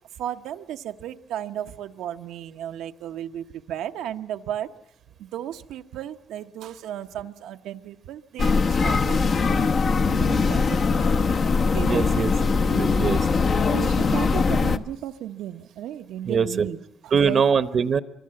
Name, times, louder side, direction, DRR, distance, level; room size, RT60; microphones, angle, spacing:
voice 1, 0.2-4.7 5.2-11.3 11.7-12.1 13.7-16.8 17.0-17.5, right 11 dB, 85° right, 7 dB, 0.9 m, -35 dB
sound 1, 8.4-14.8, left 4 dB, 50° left, 0.9 m, -21 dB
voice 2, 11.8-12.3 12.6-13.3 16.3-16.7 17.1-18.0, right 6 dB, 50° right, 13 dB, 0.9 m, -22 dB
24.0 x 23.5 x 7.7 m, 0.82 s
cardioid pair, 90°, 0 cm